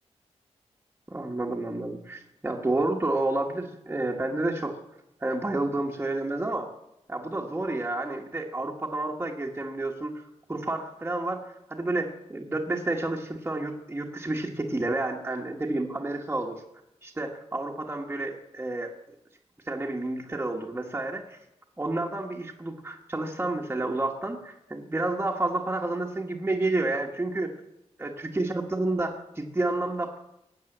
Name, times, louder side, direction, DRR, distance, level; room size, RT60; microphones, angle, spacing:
voice 1, 1.1-4.7 5.2-6.7 7.1-10.1 10.5-16.6 17.0-18.9 19.7-21.4 21.8-27.5 28.0-30.2, right 2 dB, 15° right, -1 dB, 1.3 m, -30 dB
18.5 x 8.4 x 7.9 m, 0.85 s
wide cardioid pair, 150°, 12 cm